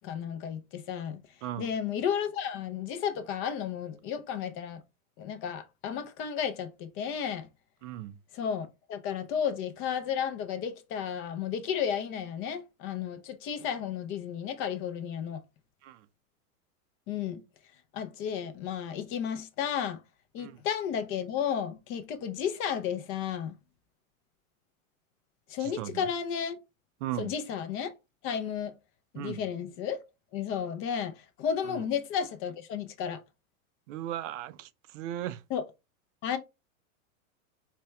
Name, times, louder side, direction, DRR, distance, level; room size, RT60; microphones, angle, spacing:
voice 1, 0.0-1.2 1.6-4.8 5.2-7.5 8.3-15.4 17.1-17.4 17.9-20.0 20.3-23.5 25.5-26.6 27.2-27.9 28.2-28.7 29.1-30.0 30.3-31.1 31.4-33.2 35.5-35.6 36.2-36.4, left 8 dB, 30° left, 0.5 m, -33 dB
voice 2, 7.8-8.2 15.8-16.0 20.4-20.6 25.6-26.0 27.0-27.3 29.2-29.4 31.7-31.8 33.9-35.4, right 13 dB, 60° right, 0.5 m, -37 dB
4.3 x 2.2 x 3.4 m
hypercardioid pair, 125°, 42 cm